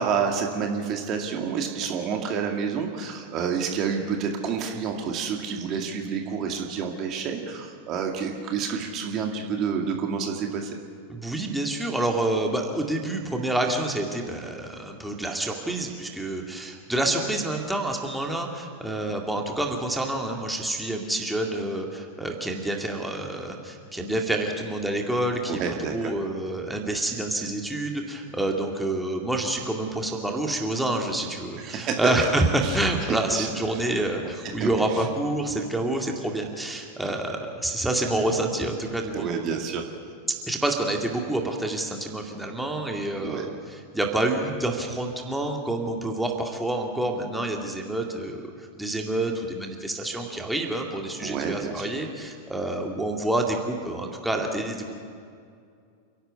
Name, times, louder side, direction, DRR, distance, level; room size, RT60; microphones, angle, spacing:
voice 1, 0.0-10.7 25.5-26.1 31.6-32.0 32.6-32.8 33.1-33.5 34.6-34.7 39.1-39.8 43.2-43.5 51.2-51.9, right 6 dB, 35° right, 3 dB, 2.2 m, -29 dB
voice 2, 11.1-25.6 25.9-39.4 40.5-54.9, right 1 dB, 5° right, 1 dB, 2.3 m, -28 dB
29.0 x 11.5 x 8.3 m, 2.3 s
figure-of-eight pair, 90°, 0 cm